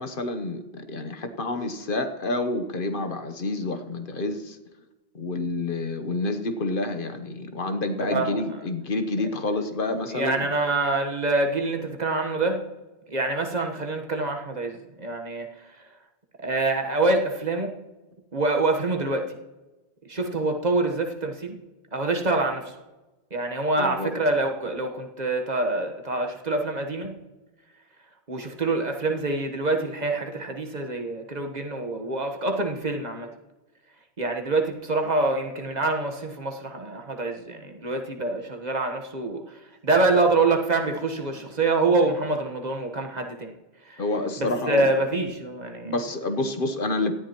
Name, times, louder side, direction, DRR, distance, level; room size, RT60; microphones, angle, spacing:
voice 1, 0.0-4.6 5.1-10.5 23.8-24.1 44.0-44.9 45.8-47.1, left 2 dB, 60° left, 8 dB, 1.1 m, -28 dB
voice 2, 8.0-8.4 10.1-12.6 13.1-15.5 16.4-17.8 18.3-19.4 20.1-21.6 21.9-22.8 23.3-27.2 28.3-33.3 34.2-43.5 43.8-44.0 44.4-45.9, right 2 dB, 45° right, 3 dB, 1.3 m, -26 dB
18.0 x 13.0 x 3.0 m, 1.1 s
omnidirectional pair, 1.0 m